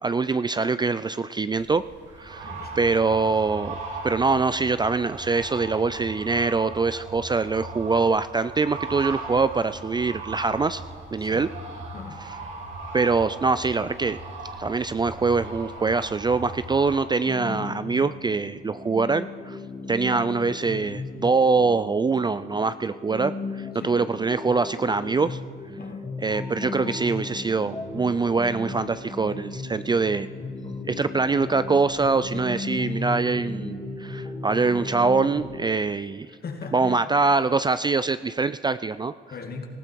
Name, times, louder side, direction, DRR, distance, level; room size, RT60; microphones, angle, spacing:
voice 1, 0.0-1.8 2.2-3.8 4.0-10.8 11.1-11.5 12.9-14.2 14.6-19.6 19.9-25.4 26.2-30.3 30.9-36.3 36.7-39.1, right 4 dB, 20° right, 14 dB, 0.4 m, -24 dB
sound 1, 1.5-17.0, right 3 dB, 75° right, 4.9 m, -38 dB
voice 2, 2.4-2.8 11.2-11.5 11.9-12.3 23.7-23.9 25.8-26.1 36.4-37.0 39.3-39.7, left 5 dB, 50° left, 4 dB, 2.3 m, -38 dB
sound 2, 17.3-35.4, left 3 dB, 25° left, 2.9 m, -36 dB
18.5 x 15.0 x 4.7 m, 2.1 s
cardioid pair, 90°, 20 cm